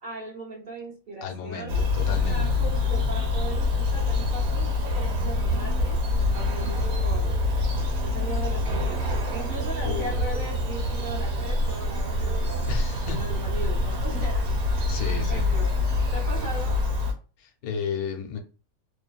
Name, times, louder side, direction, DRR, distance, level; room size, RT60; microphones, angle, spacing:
voice 1, 0.0-7.4 8.0-14.5 15.0-15.8 16.1-16.8, right 2 dB, 45° right, 0.8 m, -38 dB
voice 2, 1.2-2.5 9.8-10.2 12.7-13.2 14.9-15.5 17.4-18.4, left 6 dB, 85° left, 1.1 m, -33 dB
Bird vocalization bird call bird song, 1.7-17.1, left 2 dB, 90° right, 1.3 m, -25 dB
2.7 x 2.2 x 2.3 m
omnidirectional pair, 1.5 m